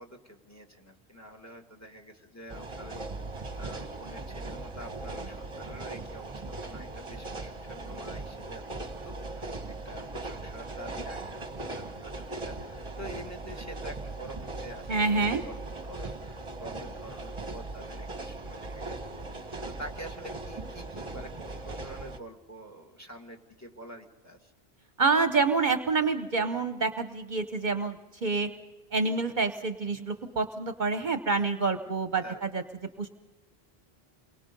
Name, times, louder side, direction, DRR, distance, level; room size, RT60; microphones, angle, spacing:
voice 1, 0.0-3.0 3.6-24.5 32.2-32.5, right 1 dB, 15° left, 3 dB, 2.1 m, -47 dB
sound 1, 2.5-22.2, right 2 dB, 30° right, 1.3 m, -39 dB
voice 2, 14.9-15.4 25.0-28.5 28.9-32.6 33.0-33.1, right 4 dB, 50° right, 8 dB, 1.0 m, -27 dB
29.0 x 22.5 x 5.3 m, 1.1 s
omnidirectional pair, 1.0 m